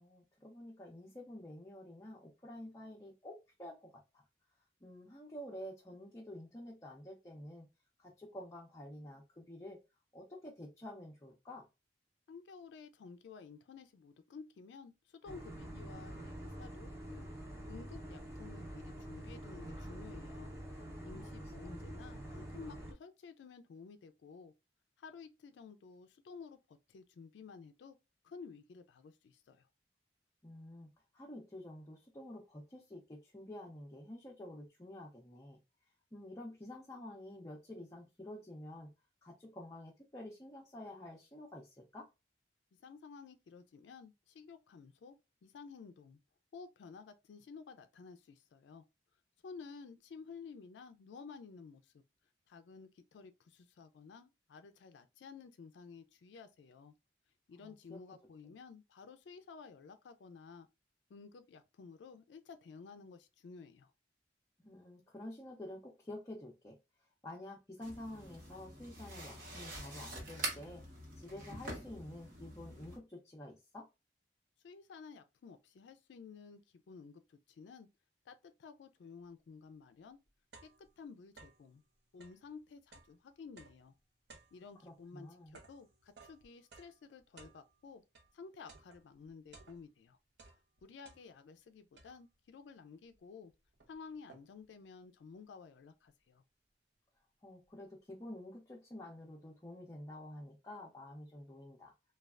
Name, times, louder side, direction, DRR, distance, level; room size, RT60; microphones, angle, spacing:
voice 1, 0.0-4.2 4.8-7.7 8.0-9.8 10.1-11.7 20.9-21.3 21.6-21.7 30.4-30.9 31.1-35.6 36.1-38.9 39.2-42.1 57.6-58.0 64.6-66.8 67.2-70.8 71.2-73.9 84.8-85.5 97.4-101.9, left 1 dB, 20° left, 0.5 m, -49 dB
voice 2, 12.3-17.3 17.7-20.5 21.0-24.5 25.0-28.0 28.2-29.7 42.8-46.2 46.5-48.8 49.4-52.0 52.5-56.9 57.5-60.7 61.1-63.9 74.6-77.9 78.3-80.2 80.6-81.8 82.1-83.9 84.5-88.0 88.3-90.2 90.8-93.5 93.9-96.4, left 5 dB, 80° left, 0.3 m, -53 dB
sound 1, 15.2-22.9, right 1 dB, 15° right, 0.7 m, -46 dB
sound 2, 67.8-73.0, right 1 dB, 50° right, 1.0 m, -45 dB
sound 3, 79.6-79.7 80.1-81.7 82.1-88.4 88.7-90.1 90.3-91.6 92.0-92.5 93.1-93.2 93.5-94.7, right 4 dB, 70° right, 0.7 m, -60 dB
3.2 x 2.3 x 2.3 m
head